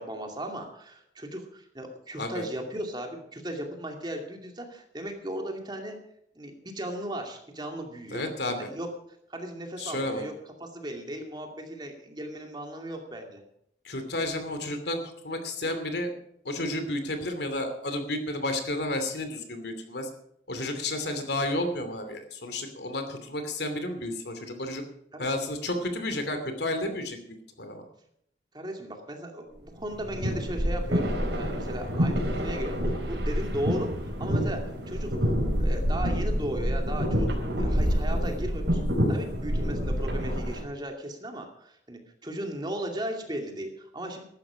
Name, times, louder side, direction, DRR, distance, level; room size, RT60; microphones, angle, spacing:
voice 1, 0.0-6.0 6.4-8.3 8.6-8.9 9.3-10.3 10.6-13.4 25.1-25.2 28.5-35.3 35.6-37.3 37.6-38.8 39.1-44.2, right 1 dB, 25° right, 3 dB, 2.5 m, -36 dB
voice 2, 8.1-8.7 9.8-10.2 13.8-15.0 15.2-16.1 16.4-20.1 20.5-24.8 25.2-27.2 27.6-27.8, left 1 dB, 70° left, 7 dB, 2.7 m, -31 dB
sound 1, 29.8-40.6, equal, 80° right, 4.6 m, -27 dB
15.0 x 12.0 x 5.0 m, 0.72 s
head